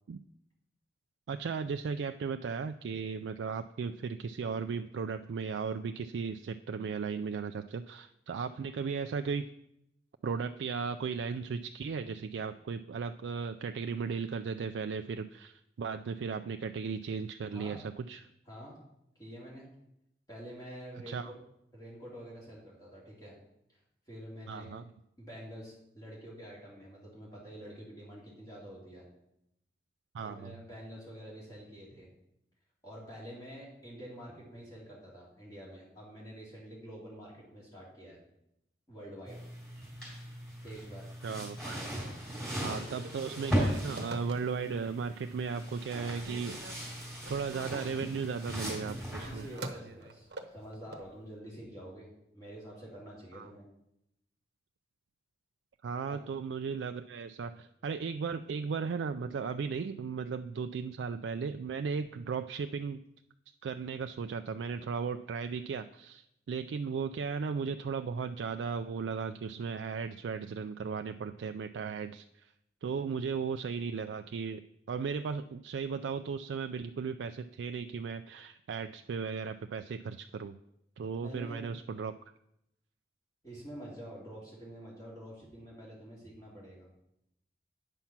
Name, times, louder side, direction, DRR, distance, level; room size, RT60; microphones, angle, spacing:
voice 1, 1.3-9.5 10.2-18.3 21.1-21.3 24.5-24.8 30.1-30.6 41.2-41.8 42.6-46.6 47.3-49.5 53.3-53.5 55.8-63.0 63.6-72.5 72.8-74.6 74.9-80.6 81.0-82.1, right 5 dB, 90° right, 8 dB, 0.3 m, -36 dB
voice 2, 18.5-18.8 19.2-19.7 20.3-21.3 21.7-23.3 23.7-23.8 24.1-24.8 25.2-29.0 30.2-32.1 32.8-38.2 38.9-39.5 40.6-41.1 42.6-42.9 49.2-53.6 56.1-56.2 81.2-81.7 83.4-86.9, equal, 20° left, -6 dB, 2.5 m, -47 dB
sound 1, 39.3-49.7, equal, ahead, 3.9 m, -38 dB
Telephone, 42.3-44.8 45.3-45.8 46.1-51.1, right 2 dB, 70° right, 0.9 m, -47 dB
9.0 x 5.7 x 5.9 m, 0.80 s
head